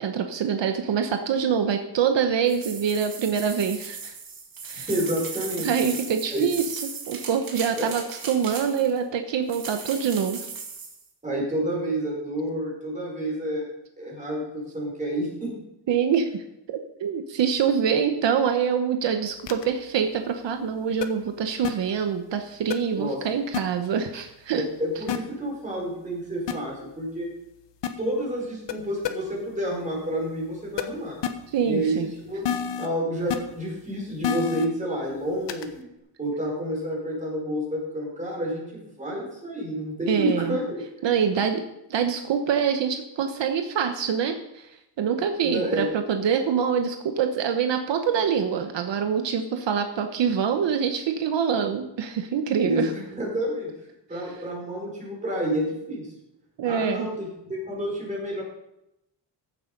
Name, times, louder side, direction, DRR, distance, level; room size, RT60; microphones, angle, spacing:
voice 1, 0.0-4.1 4.6-4.9 5.6-10.5 15.9-24.6 31.5-32.1 40.1-40.6 41.0-41.6 41.9-44.7 45.0-52.9 56.6-57.1, right 7 dB, 70° right, 6 dB, 1.1 m, -25 dB
sound 1, 2.5-9.0 9.5-11.0, right 5 dB, 50° right, 2.3 m, -37 dB
voice 2, 4.7-5.7 6.3-6.5 7.8-7.9 11.2-13.7 14.0-15.5 23.0-23.2 24.6-27.3 28.0-31.2 31.6-31.9 32.3-32.4 32.8-35.9 36.2-40.8 45.4-45.9 52.6-53.7 54.1-56.1 56.6-58.4, equal, 15° right, -3 dB, 4.7 m, -29 dB
sound 2, 19.5-19.7 21.0-21.1 21.6-21.7 22.7-22.8 23.5-23.6 25.1-25.2 26.5-26.6 27.8-27.9 28.7-28.8 29.0-29.1 30.8-30.9 31.2-31.3 32.4-32.9 33.3-33.4 34.2-34.7 35.5-35.7, left 9 dB, 70° left, 1.2 m, -27 dB
15.0 x 8.2 x 5.3 m, 0.86 s
wide cardioid pair, 180°, 44 cm